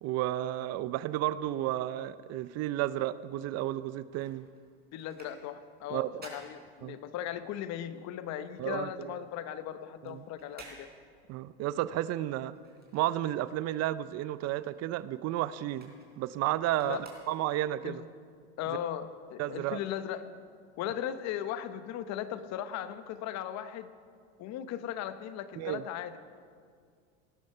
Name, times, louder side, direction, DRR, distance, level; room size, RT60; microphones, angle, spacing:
voice 1, 0.0-4.5 5.9-6.1 6.8-7.0 8.6-9.1 10.0-10.2 11.3-12.6 12.9-18.0 19.4-19.8 25.6-25.8, right 14 dB, 50° right, 16 dB, 0.6 m, -32 dB
sound 1, 3.8-7.4 7.7-13.7 14.0-17.8 18.3-18.4, right 3 dB, 30° right, 4.2 m, -55 dB
voice 2, 4.9-10.9 16.8-17.0 17.8-18.0 18.6-20.3 20.8-23.9 24.4-26.2, left 10 dB, 55° left, 11 dB, 1.1 m, -37 dB
18.5 x 12.5 x 5.5 m, 2.1 s
supercardioid pair, 105°, 32 cm